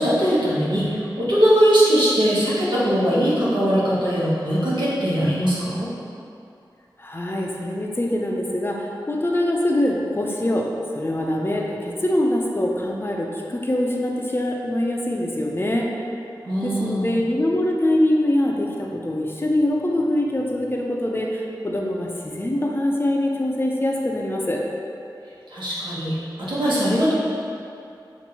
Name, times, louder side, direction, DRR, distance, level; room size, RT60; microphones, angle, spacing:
voice 1, 0.0-5.9 16.4-17.1 25.5-27.1, equal, 80° right, -9 dB, 1.2 m, -20 dB
voice 2, 7.0-15.9 16.6-24.6, left 1 dB, 30° left, -1 dB, 0.5 m, -23 dB
6.8 x 2.6 x 2.9 m, 2.6 s
wide cardioid pair, 75°, 8 cm